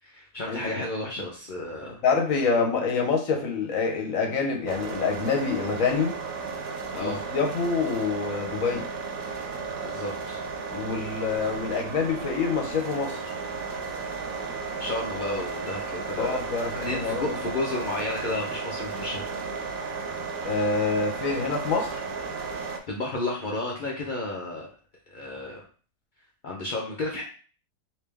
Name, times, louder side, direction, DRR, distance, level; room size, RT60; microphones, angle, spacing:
voice 1, 0.0-2.0 6.9-7.2 9.8-10.4 14.8-19.3 22.9-24.7 25.1-25.6 26.4-27.2, left 2 dB, 80° left, -3 dB, 0.4 m, -32 dB
voice 2, 2.0-6.1 7.0-8.9 10.7-13.3 16.2-17.3 20.4-22.0, left 4 dB, 60° left, 2 dB, 1.0 m, -26 dB
sound 1, 4.7-22.8, right 4 dB, 70° right, 0.9 m, -34 dB
3.3 x 2.9 x 3.4 m, 0.39 s
omnidirectional pair, 1.8 m